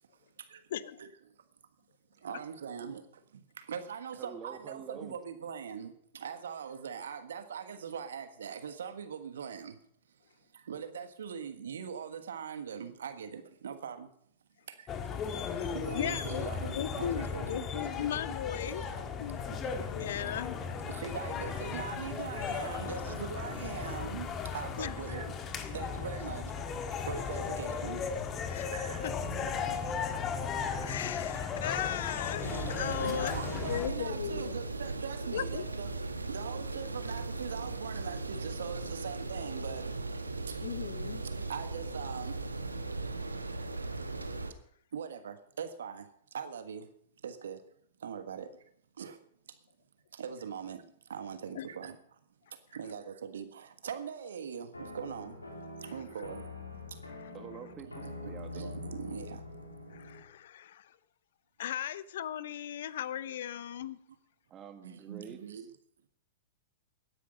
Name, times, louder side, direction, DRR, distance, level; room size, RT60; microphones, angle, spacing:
voice 1, 0.7-1.0 2.3-2.4 15.6-15.7 15.9-18.9 19.2-19.5 19.9-20.6 24.8-24.9 28.5-28.7 29.0-29.1 29.4-29.5 30.8-34.6 35.3-35.6 40.6-41.2 51.6-51.7 55.8-55.9 57.1-57.3 59.9-61.0 61.6-64.0, left 10 dB, 60° left, 19 dB, 0.6 m, -37 dB
voice 2, 2.2-9.8 10.5-14.1 14.7-15.0 15.7-17.9 18.6-19.1 19.5-19.6 20.1-20.3 20.9-26.5 27.0-28.0 28.7-29.1 29.7-29.9 33.0-36.0 36.2-40.0 40.5-40.6 41.0-42.4 44.9-46.9 47.2-47.6 48.0-48.5 49.0-49.2 50.1-50.8 51.1-52.2 52.5-55.4 55.8-57.0 57.8-59.4 64.8-65.7, right 7 dB, 70° right, 9 dB, 1.4 m, -42 dB
voice 3, 4.2-5.2 57.3-58.8 64.5-65.7, right 7 dB, 30° right, 8 dB, 1.7 m, -47 dB
sound 1, 14.9-33.9, left 6 dB, 30° left, 1.6 m, -36 dB
sound 2, 32.4-44.5, right 3 dB, 90° right, 1.2 m, -38 dB
sound 3, 54.7-60.3, left 2 dB, 90° left, 2.8 m, -45 dB
17.5 x 10.0 x 5.3 m, 0.68 s
figure-of-eight pair, 105°, 0 cm